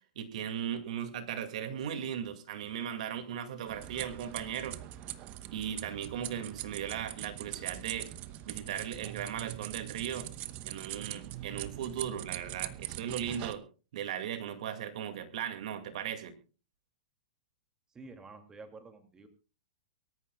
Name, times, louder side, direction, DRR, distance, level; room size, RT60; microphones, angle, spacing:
voice 1, 0.2-4.8 5.5-8.1 8.5-10.3 10.7-13.6 13.9-16.3, right 9 dB, 65° right, 8 dB, 2.2 m, -37 dB
sound 1, 3.7-13.5, right 14 dB, 35° right, 1.0 m, -42 dB
voice 2, 17.9-19.3, right 3 dB, 15° right, 6 dB, 2.5 m, -50 dB
24.0 x 13.5 x 2.3 m, 0.34 s
hypercardioid pair, 125°, 4 cm